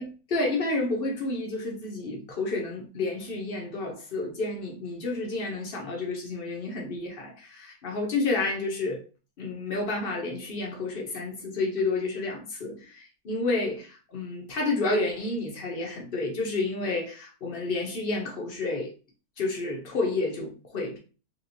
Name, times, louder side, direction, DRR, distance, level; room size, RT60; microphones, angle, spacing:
voice 1, 0.0-9.0 9.4-18.9 19.4-21.0, left 2 dB, 75° left, 0 dB, 0.5 m, -30 dB
3.3 x 2.9 x 2.6 m, 0.35 s
omnidirectional pair, 2.0 m